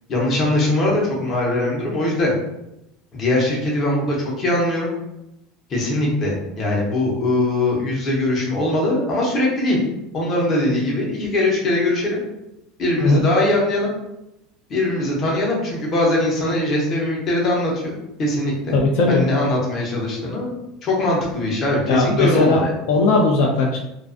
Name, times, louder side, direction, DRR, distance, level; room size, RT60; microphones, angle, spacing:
voice 1, 0.1-2.3 3.1-4.9 5.7-9.8 10.1-12.2 12.8-13.9 14.7-18.8 19.1-20.6 20.8-22.7, left 1 dB, 30° left, -3 dB, 0.7 m, -21 dB
voice 2, 18.7-19.3 21.8-22.6 22.9-23.8, left 2 dB, 70° left, 0 dB, 0.3 m, -18 dB
2.4 x 2.2 x 2.4 m, 0.88 s
cardioid pair, 165°, 0 cm